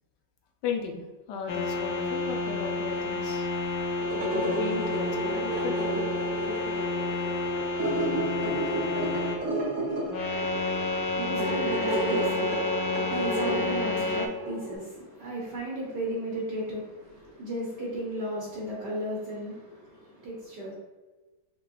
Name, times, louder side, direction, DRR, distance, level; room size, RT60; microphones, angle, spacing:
voice 1, 0.6-3.5 4.1-5.2 5.4-5.8, left 5 dB, 70° left, 2 dB, 1.2 m, -35 dB
sound 1, 1.5-9.4 10.1-14.3, left 3 dB, 85° left, 1.5 m, -30 dB
sound 2, 4.0-14.8, right 1 dB, 45° right, 1.2 m, -32 dB
voice 2, 10.7-20.7, right 1 dB, 60° right, -4 dB, 1.5 m, -35 dB
5.5 x 3.1 x 2.5 m, 1.2 s
omnidirectional pair, 2.2 m